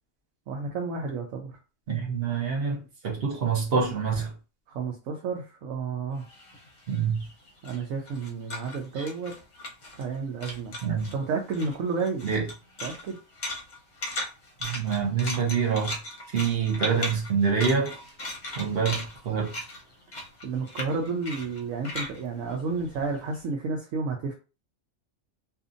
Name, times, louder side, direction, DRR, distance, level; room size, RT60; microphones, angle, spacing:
voice 1, 0.5-1.6 4.7-6.3 7.6-9.3 10.0-10.8 11.1-12.3 12.8-13.2 20.4-24.3, right 4 dB, 75° right, 1.0 m, -31 dB
voice 2, 1.9-4.3 6.9-7.2 9.0-9.1 10.8-11.1 12.2-12.5 14.6-16.0 16.3-17.9 18.6-19.5, right 6 dB, 55° right, 0.9 m, -26 dB
sound 1, 6.2-10.2 10.4-11.2 11.5-23.3, left 1 dB, 40° left, 0.7 m, -38 dB
2.7 x 2.4 x 2.5 m
omnidirectional pair, 1.4 m